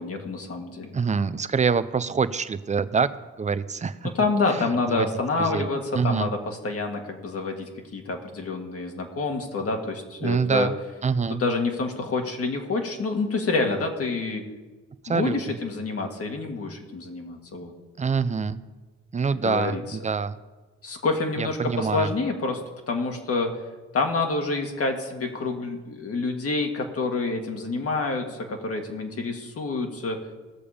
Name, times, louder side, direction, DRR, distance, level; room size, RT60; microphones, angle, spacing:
voice 1, 0.0-0.9 4.1-10.7 11.3-14.4 15.1-17.7 19.3-20.0 20.8-22.6 22.9-23.5 23.9-30.2, left 3 dB, 50° left, 3 dB, 2.1 m, -27 dB
voice 2, 0.9-3.1 3.4-4.1 4.5-4.7 4.9-5.1 5.4-5.7 5.9-6.3 10.2-10.7 11.0-11.4 15.0-15.6 18.0-18.6 19.1-20.4 21.4-22.1, right 5 dB, 25° right, 14 dB, 0.6 m, -25 dB
18.0 x 6.8 x 5.1 m, 1.3 s
cardioid pair, 90°, 30 cm